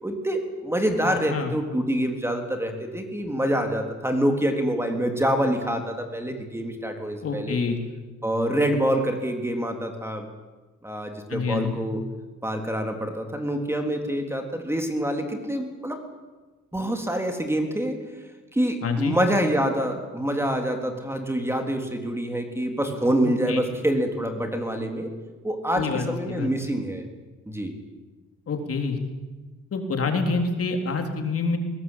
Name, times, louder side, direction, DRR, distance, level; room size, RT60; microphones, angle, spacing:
voice 1, 0.0-7.6 8.2-10.3 10.8-12.0 12.4-16.0 16.7-18.0 18.5-25.1 25.4-27.0 27.5-27.7, equal, 10° right, 4 dB, 3.5 m, -26 dB
voice 2, 1.0-1.5 7.2-7.8 11.3-11.8 18.8-19.2 23.2-23.6 25.7-26.7 28.5-29.0 29.7-31.6, left 4 dB, 50° left, 4 dB, 3.8 m, -27 dB
21.0 x 19.5 x 8.9 m, 1.3 s
cardioid pair, 90°, 30 cm